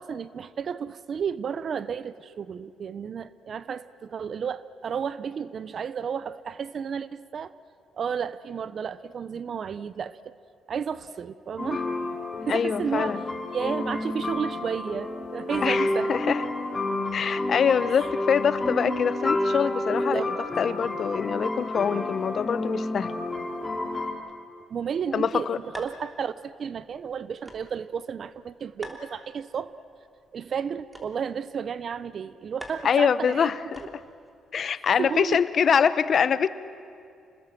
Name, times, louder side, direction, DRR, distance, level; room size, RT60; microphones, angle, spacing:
voice 1, 0.0-7.5 7.9-10.3 10.7-11.9 12.4-13.2 13.5-16.4 18.0-18.1 19.9-20.3 24.7-29.7 30.3-33.5 35.0-35.4, right 7 dB, 55° right, 16 dB, 0.6 m, -32 dB
sound 1, 11.6-24.1, left 2 dB, 25° left, 3.4 m, -30 dB
voice 2, 12.5-13.2 15.6-16.4 17.1-23.1 25.1-25.6 32.8-33.8 34.5-36.5, left 7 dB, 55° left, 15 dB, 0.8 m, -24 dB
sound 2, 25.7-34.3, equal, 10° right, 3.3 m, -48 dB
27.5 x 20.0 x 7.6 m, 2.5 s
cardioid pair, 90°, 0 cm